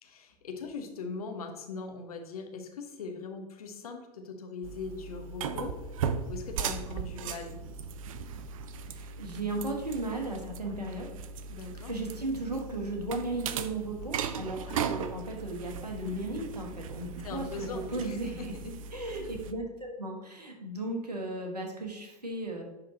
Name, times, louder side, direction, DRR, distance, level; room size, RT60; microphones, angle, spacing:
voice 1, 0.0-5.7 6.3-7.6 11.5-11.9 14.7-14.8 17.2-18.7 19.2-19.3, left 4 dB, 70° left, 4 dB, 1.1 m, -40 dB
sound 1, 4.6-19.5, right 6 dB, 60° right, 0.5 m, -38 dB
voice 2, 8.8-11.1 11.9-22.6, right 2 dB, 85° right, 2 dB, 1.3 m, -36 dB
10.5 x 3.9 x 2.8 m, 1.1 s
figure-of-eight pair, 95°, 20 cm